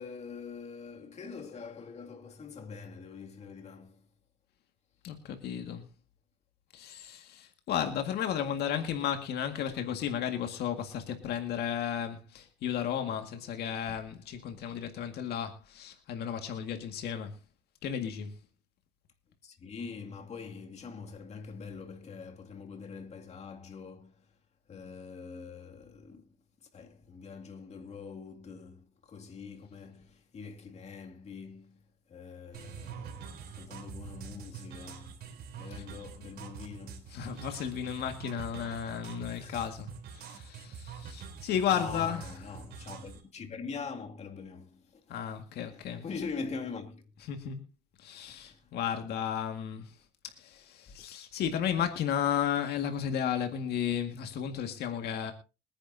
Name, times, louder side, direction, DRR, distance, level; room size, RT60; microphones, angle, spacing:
voice 1, 0.0-4.0 19.4-24.1 24.7-26.3 26.7-31.8 32.1-35.2 35.6-37.1 39.4-39.6 41.7-45.0 45.9-47.0 48.1-48.4, left 5 dB, 40° left, 2.4 m, -43 dB
voice 2, 5.0-5.9 6.7-17.4 17.8-18.3 35.6-35.9 37.1-42.6 45.1-46.0 47.2-47.6 48.0-50.0 50.2-55.3, left 9 dB, 70° left, 1.9 m, -34 dB
sound 1, 32.5-43.2, right 7 dB, 65° right, 3.4 m, -45 dB
23.0 x 10.0 x 2.7 m
cardioid pair, 110°, 17 cm